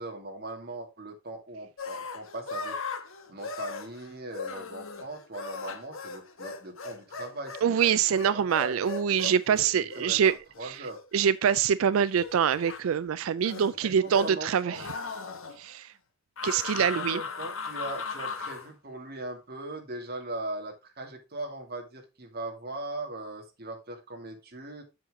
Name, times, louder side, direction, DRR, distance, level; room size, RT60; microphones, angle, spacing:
voice 1, 0.0-2.8 3.3-7.8 8.3-8.8 9.2-11.0 13.8-14.8 16.8-24.8, right 2 dB, 50° right, 2.3 m, -39 dB
sound 1, 1.8-11.7 12.2-12.8 13.4-14.4 14.7-15.6 16.4-18.7, left 4 dB, 70° left, 1.2 m, -38 dB
voice 2, 7.6-10.3 10.6-10.9 11.1-14.9 15.6-15.9 16.4-17.2, right 8 dB, 80° right, 0.4 m, -25 dB
7.6 x 7.3 x 3.7 m
head